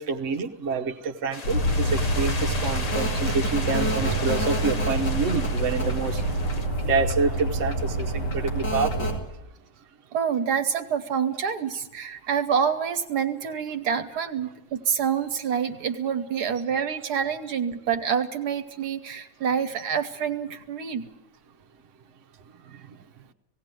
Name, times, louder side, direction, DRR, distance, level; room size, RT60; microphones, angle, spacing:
voice 1, 0.0-6.2 6.8-9.1, right 4 dB, 50° right, 5 dB, 1.3 m, -27 dB
sound 1, 1.3-6.7, left 3 dB, 30° left, 0.8 m, -36 dB
sound 2, 1.4-9.2, right 1 dB, 90° left, 3.1 m, -26 dB
voice 2, 10.1-21.1, right 7 dB, 70° right, 8 dB, 1.5 m, -27 dB
18.0 x 17.0 x 9.1 m, 0.94 s
omnidirectional pair, 1.8 m